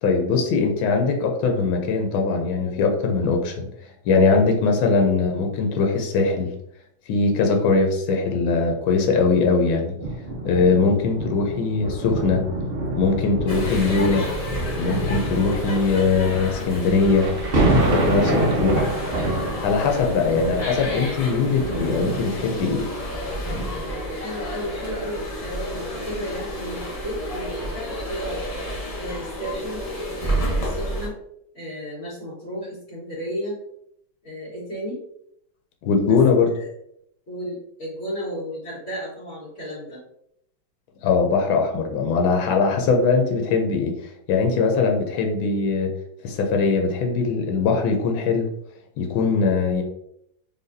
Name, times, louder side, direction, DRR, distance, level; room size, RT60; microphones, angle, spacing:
voice 1, 0.0-3.7 4.0-6.5 7.1-9.9 10.4-12.4 12.9-14.3 14.8-17.3 17.6-18.9 19.6-22.9 35.8-36.6 41.0-43.9 44.3-45.9 46.2-48.5 49.0-49.8, left 4 dB, 80° left, 3 dB, 1.5 m, -21 dB
sound 1, 10.0-22.8 23.5-23.6, right 2 dB, 60° right, 0.5 m, -27 dB
sound 2, 13.5-31.1, equal, 60° left, 0.3 m, -30 dB
voice 2, 24.1-28.4 28.9-29.8 30.2-31.1 31.5-33.6 34.2-35.0 36.0-36.2 36.5-36.7 37.3-40.0 43.4-43.6, equal, 40° left, -10 dB, 1.7 m, -34 dB
4.1 x 3.4 x 2.6 m, 0.73 s
omnidirectional pair, 2.2 m